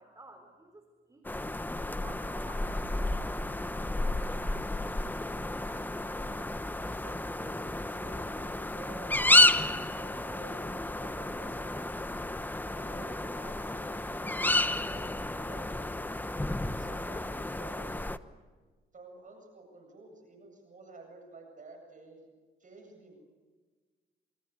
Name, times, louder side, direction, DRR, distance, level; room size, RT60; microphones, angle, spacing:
voice 1, 0.0-4.7, right 2 dB, 15° right, 6 dB, 3.9 m, -55 dB
sound 1, 1.2-18.2, left 2 dB, 10° left, 1.1 m, -31 dB
voice 2, 6.8-12.0 12.7-16.1 16.7-18.0 18.9-22.2 22.6-23.2, right 3 dB, 40° right, 3 dB, 7.8 m, -51 dB
28.5 x 27.0 x 7.0 m, 1.4 s
cardioid pair, 90°, 20 cm